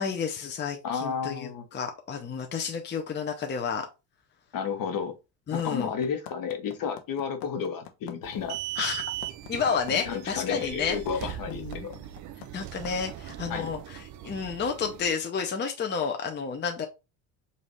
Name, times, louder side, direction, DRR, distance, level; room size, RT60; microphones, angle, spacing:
voice 1, 0.0-3.9 5.5-5.9 8.8-9.0 9.5-11.9 12.5-16.9, left 6 dB, 25° left, 0.7 m, -31 dB
voice 2, 0.8-1.7 4.5-5.1 5.5-8.6 9.9-12.0 13.5-13.7, left 6 dB, 50° left, 1.2 m, -32 dB
sound 1, 5.6-13.3, left 11 dB, 65° left, 1.0 m, -44 dB
sound 2, 8.2-15.1, right 13 dB, 45° right, 0.5 m, -39 dB
5.3 x 2.8 x 3.1 m
supercardioid pair, 90°, 43 cm